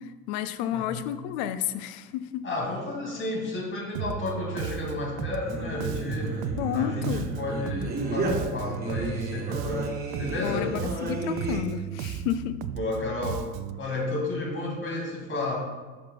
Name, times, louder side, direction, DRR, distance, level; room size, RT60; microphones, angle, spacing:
voice 1, 0.0-2.4 6.6-7.3 10.4-12.6, left 11 dB, 45° left, 12 dB, 0.5 m, -31 dB
voice 2, 0.7-1.0 2.4-6.4 6.7-10.7 12.7-13.4 13.8-15.6, left 2 dB, 30° left, -1 dB, 2.4 m, -32 dB
Bass guitar, 3.9-13.8, right 9 dB, 45° right, 0.4 m, -35 dB
Singing, 5.4-11.6, right 2 dB, 20° right, 2.3 m, -33 dB
12.0 x 6.0 x 2.2 m, 1.3 s
figure-of-eight pair, 65°, 43 cm